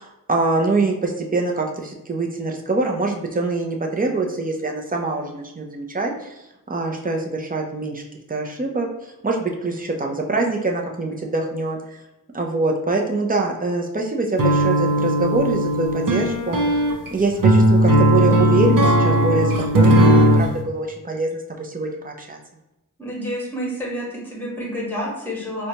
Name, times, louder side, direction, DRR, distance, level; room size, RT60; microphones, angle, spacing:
voice 1, 0.0-6.1 6.7-8.0 8.3-8.9 9.2-11.8 12.3-16.6 17.1-21.3 21.6-22.4, right 3 dB, 25° right, 1 dB, 0.5 m, -24 dB
sound 1, 14.4-20.5, right 1 dB, 70° right, 0.6 m, -17 dB
voice 2, 23.0-25.7, equal, 5° left, -5 dB, 1.3 m, -29 dB
4.1 x 2.2 x 2.8 m, 0.91 s
wide cardioid pair, 95°, 33 cm